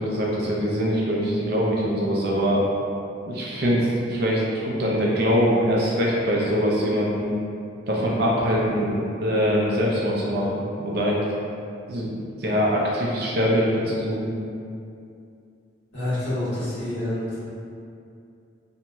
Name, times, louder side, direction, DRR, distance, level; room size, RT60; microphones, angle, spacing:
voice 1, 0.0-2.6 3.3-7.3 7.9-11.2 11.9-12.1 12.4-14.4, equal, 50° right, -5 dB, 0.5 m, -23 dB
voice 2, 15.9-17.5, left 1 dB, 90° left, -13 dB, 1.4 m, -28 dB
2.9 x 2.7 x 2.2 m, 2.5 s
head